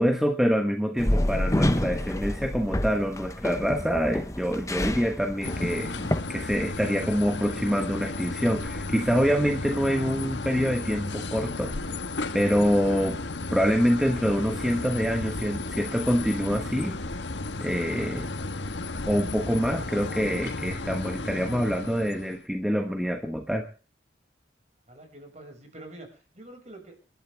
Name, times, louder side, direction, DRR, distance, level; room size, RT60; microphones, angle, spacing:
voice 1, 0.0-5.9 6.3-11.7 12.3-13.2 13.5-17.0 17.6-18.3 19.1-23.7, equal, ahead, 4 dB, 1.3 m, -26 dB
sound 1, 1.0-6.2, left 1 dB, 15° left, 0.9 m, -28 dB
sound 2, 5.4-22.4, left 2 dB, 85° left, 1.5 m, -34 dB
voice 2, 24.9-27.0, right 1 dB, 40° right, 4 dB, 6.1 m, -46 dB
27.5 x 12.0 x 3.5 m, 0.35 s
head